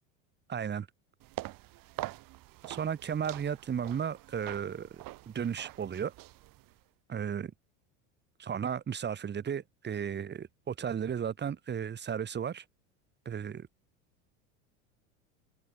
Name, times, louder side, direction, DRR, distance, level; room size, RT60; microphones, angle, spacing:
voice 1, 0.5-0.9 2.6-6.1 7.1-7.5 8.4-12.6 13.3-13.7, right 8 dB, 25° right, 1.7 m, -34 dB
sound 1, 1.2-6.8, right 18 dB, 55° right, 4.6 m, -45 dB
hypercardioid pair, 90°, 41 cm